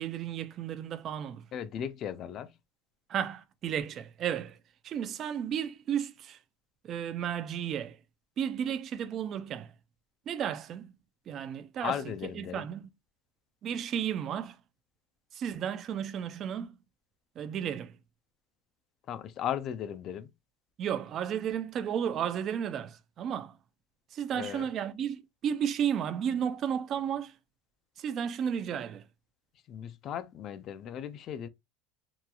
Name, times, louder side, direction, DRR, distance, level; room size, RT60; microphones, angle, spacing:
voice 1, 0.0-1.4 3.1-4.6 4.8-6.4 6.8-8.0 8.4-9.7 10.3-10.9 11.3-12.0 12.4-12.9 13.6-14.6 15.3-16.8 17.4-17.9 20.8-23.5 24.1-27.3 28.0-29.0, right 9 dB, 35° right, 0.3 m, -33 dB
voice 2, 1.5-2.5 11.8-12.7 19.1-20.3 24.3-24.7 29.7-31.5, left 9 dB, 40° left, 0.3 m, -36 dB
2.9 x 2.3 x 2.3 m
supercardioid pair, 135°, 0 cm